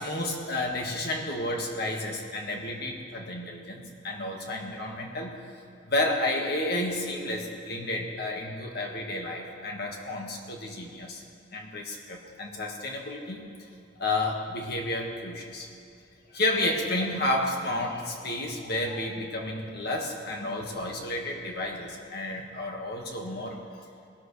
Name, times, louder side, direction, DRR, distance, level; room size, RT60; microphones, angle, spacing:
voice 1, 0.0-5.4 5.8-11.2 11.5-13.4 14.0-15.7 16.3-23.9, left 1 dB, 60° left, 1 dB, 1.7 m, -31 dB
20.5 x 12.5 x 3.3 m, 2.3 s
head